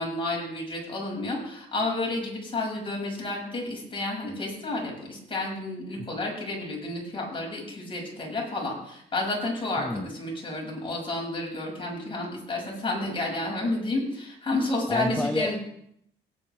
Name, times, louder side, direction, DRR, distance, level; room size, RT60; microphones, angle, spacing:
voice 1, 0.0-15.6, left 2 dB, 25° left, -2 dB, 6.6 m, -31 dB
voice 2, 14.9-15.5, left 1 dB, 5° left, 6 dB, 0.9 m, -29 dB
18.0 x 9.6 x 3.5 m, 0.70 s
cardioid pair, 90°, 20 cm